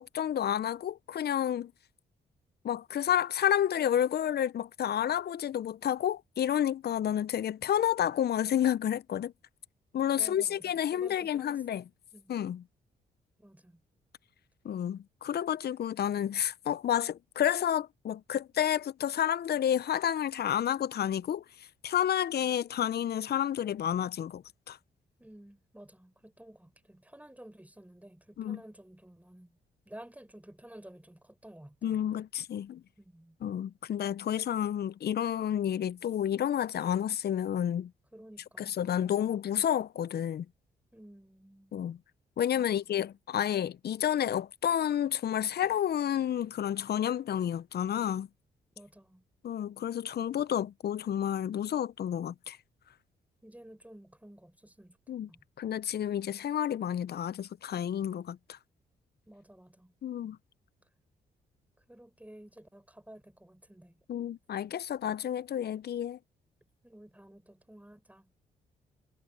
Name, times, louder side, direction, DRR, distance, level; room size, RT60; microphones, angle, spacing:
voice 1, 0.0-1.7 2.6-9.3 9.9-11.8 12.3-12.6 14.6-21.4 21.8-24.8 28.4-28.6 31.8-32.8 33.4-37.9 38.6-40.5 41.7-42.0 42.4-48.3 49.4-52.6 55.1-55.3 55.6-58.6 60.0-60.4 64.1-66.2, left 10 dB, 55° left, 0.8 m, -30 dB
voice 2, 10.2-11.6 12.1-12.4 13.4-13.8 25.2-29.6 29.9-32.0 33.0-33.4 38.1-39.4 40.9-41.9 42.5-42.9 48.8-49.2 53.4-55.4 59.3-59.9 61.9-64.0 66.8-68.3, right 1 dB, 5° right, 7.1 m, -53 dB
hypercardioid pair, 45°, 20 cm